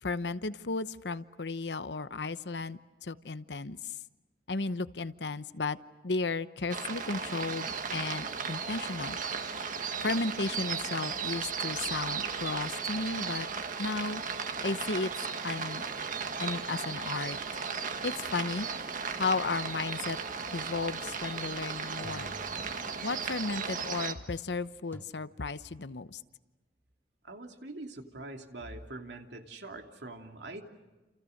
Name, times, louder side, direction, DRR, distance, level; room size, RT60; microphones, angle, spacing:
voice 1, 0.0-4.0 4.5-5.8 6.0-9.2 10.0-13.5 13.8-15.1 15.4-15.9 16.4-17.4 18.0-18.7 19.2-20.2 20.5-22.3 23.0-26.2, left 3 dB, 70° left, 13 dB, 0.9 m, -34 dB
sound 1, 6.7-24.1, right 5 dB, 50° right, 1.7 m, -36 dB
sound 2, 22.0-23.3 24.9-25.0, right 1 dB, 15° left, 2.0 m, -51 dB
voice 2, 27.2-30.6, right 2 dB, 75° right, 4 dB, 2.9 m, -44 dB
30.0 x 28.5 x 6.6 m, 1.2 s
head